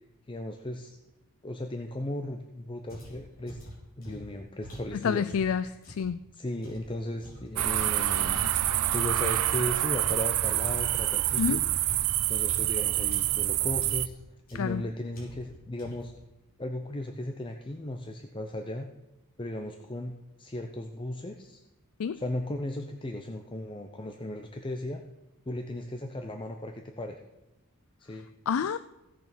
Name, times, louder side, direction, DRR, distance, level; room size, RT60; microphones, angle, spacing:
voice 1, 0.3-1.0 1.4-3.6 4.0-5.7 6.3-11.6 12.3-14.2 14.5-16.1 16.6-18.9 19.4-21.6 22.1-25.0 25.5-27.2 28.0-28.3, left 1 dB, 20° left, 5 dB, 0.7 m, -36 dB
sound 1, 2.9-6.1 6.6-11.0 11.3-13.5 13.8-14.2 14.5-14.8 15.1-15.5 15.8-16.2, equal, 40° left, 4.8 m, -46 dB
voice 2, 5.0-6.2 11.4-11.7 14.5-14.8 22.0-22.2 28.5-28.8, left 7 dB, 65° left, 14 dB, 0.4 m, -28 dB
sound 2, 7.6-14.1, right 13 dB, 85° right, 0.5 m, -27 dB
16.0 x 6.8 x 6.0 m, 1.0 s
head